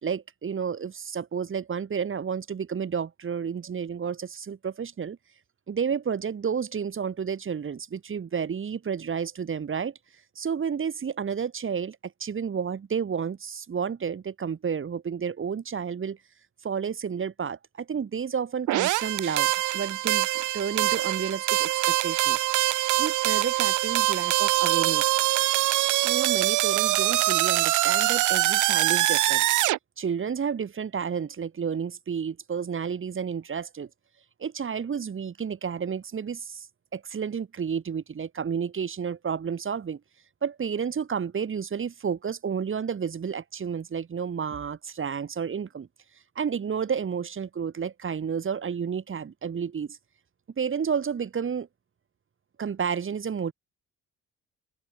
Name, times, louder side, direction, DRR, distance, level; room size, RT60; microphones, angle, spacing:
voice 1, 0.0-5.2 5.7-9.9 10.4-16.2 16.6-22.5 23.0-25.2 26.0-29.4 30.0-33.9 34.4-36.7 36.9-40.0 40.4-45.9 46.4-50.0 50.6-51.7 52.6-53.5, right 7 dB, 40° right, 2.6 m, -31 dB
sound 1, 18.7-29.8, right 16 dB, 85° right, 1.1 m, -24 dB
open air
cardioid pair, 90°, 30 cm